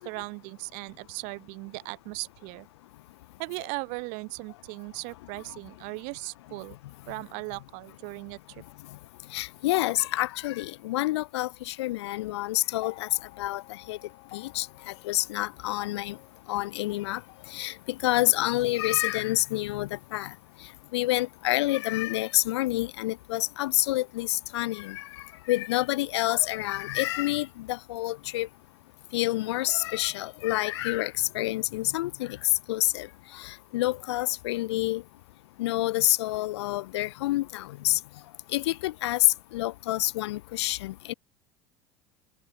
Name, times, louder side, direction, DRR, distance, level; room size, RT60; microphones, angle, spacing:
voice 1, 0.0-2.7 3.4-6.7 7.1-8.6, right 35 dB, 70° right, 3.0 m, -38 dB
voice 2, 9.3-13.1 13.4-13.6 13.9-14.0 14.3-14.7 15.0-16.2 16.5-17.2 17.5-17.7 18.0-20.3 20.9-25.1 25.5-28.5 29.1-32.4 32.7-33.1 33.3-35.0 35.6-38.0 38.5-39.3 39.5-41.1, left 17 dB, 85° left, 2.0 m, -28 dB
sound 1, 12.7-21.1 22.2-22.3, left 19 dB, 60° left, 4.2 m, -53 dB
supercardioid pair, 100°, 14 cm